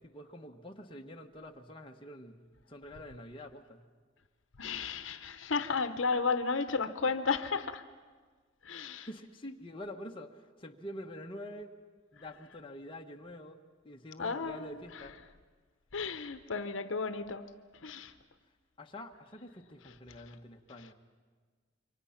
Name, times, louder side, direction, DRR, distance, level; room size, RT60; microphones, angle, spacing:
voice 1, 0.0-3.8 8.7-11.7 12.1-13.6 13.8-15.2 18.8-20.9, left 1 dB, 25° left, 2 dB, 1.1 m, -47 dB
voice 2, 4.6-7.8 8.6-9.1 14.2-14.8 15.9-17.4 17.8-18.1, left 4 dB, 75° left, 10 dB, 0.8 m, -33 dB
27.0 x 24.0 x 5.8 m, 1.5 s
head